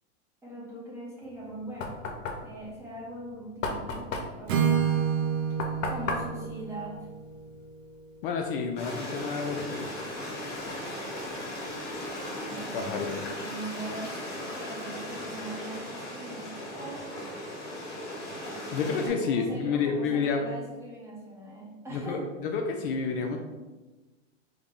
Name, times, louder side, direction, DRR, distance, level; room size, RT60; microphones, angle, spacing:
voice 1, 0.4-2.0 2.4-4.9 5.9-7.1 12.4-17.1 19.1-22.3, right 1 dB, 10° right, -5 dB, 0.5 m, -41 dB
Knock, 1.3-7.7, left 3 dB, 80° left, 0.7 m, -36 dB
Acoustic guitar / Strum, 4.5-8.4, right 8 dB, 90° right, 0.7 m, -29 dB
voice 2, 8.2-9.9 12.7-13.1 18.7-20.5 21.9-23.4, left 5 dB, 50° left, 3 dB, 0.4 m, -29 dB
Stream, 8.8-19.1, left 1 dB, 25° left, 1.3 m, -37 dB
3.7 x 2.1 x 3.6 m, 1.2 s
hypercardioid pair, 140°, 37 cm